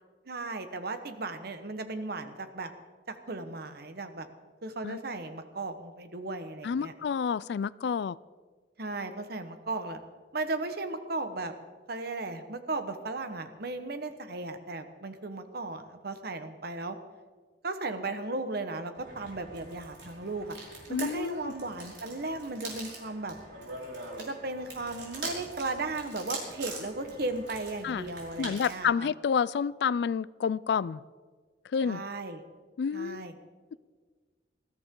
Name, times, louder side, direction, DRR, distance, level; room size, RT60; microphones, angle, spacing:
voice 1, 0.3-2.7 3.1-4.3 4.6-6.9 8.8-10.0 10.3-11.5 11.9-17.0 17.6-20.6 20.9-23.4 24.2-29.1 31.8-32.4 32.9-33.3, right 2 dB, 60° right, 8 dB, 1.3 m, -36 dB
voice 2, 6.6-8.2 20.9-21.5 27.8-28.0 28.4-31.0 31.7-32.0 32.8-33.3, left 6 dB, 65° left, 20 dB, 0.3 m, -29 dB
sound 1, 19.0-28.8, right 2 dB, 90° right, 5.2 m, -43 dB
20.5 x 14.5 x 3.8 m, 1.5 s
head